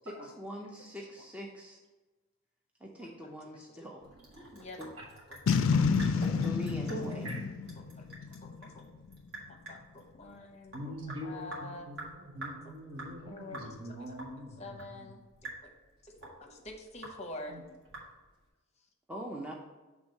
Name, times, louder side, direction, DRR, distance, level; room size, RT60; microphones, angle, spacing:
voice 1, 0.1-1.8 2.8-4.0 4.8-4.9 6.4-7.2 19.1-19.5, equal, 5° right, -1 dB, 0.5 m, -42 dB
voice 2, 3.0-3.9 4.5-4.9 5.3-5.4 5.7-6.2 7.8-8.8 9.5-10.9 11.2-11.9 12.6-12.7 13.2-14.1 14.6-15.7 16.0-17.6, left 2 dB, 30° left, 2 dB, 0.8 m, -48 dB
Sink (filling or washing) / Drip, 4.0-18.5, right 2 dB, 50° right, 1.8 m, -49 dB
Boom, 5.5-8.8, left 5 dB, 65° left, 0.3 m, -29 dB
voice 3, 6.9-7.4 10.7-15.1 17.5-17.6, equal, 70° right, -2 dB, 1.7 m, -43 dB
6.2 x 3.5 x 5.3 m, 1.2 s
head